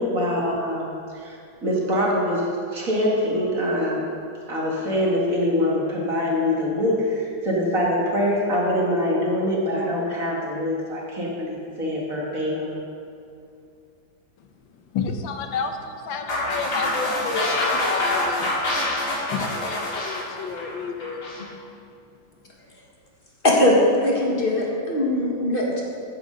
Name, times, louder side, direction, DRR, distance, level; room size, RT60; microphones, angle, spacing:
voice 1, 0.0-4.1 4.5-12.7, left 1 dB, 45° right, -4 dB, 2.5 m, -24 dB
voice 2, 14.7-18.7 19.3-21.3, left 5 dB, 85° left, 5 dB, 1.7 m, -30 dB
sound 1, 16.3-21.4, left 1 dB, 60° left, 2.8 m, -26 dB
voice 3, 23.4-25.8, left 1 dB, 30° left, -3 dB, 1.8 m, -20 dB
14.0 x 10.0 x 4.0 m, 2.5 s
omnidirectional pair, 2.0 m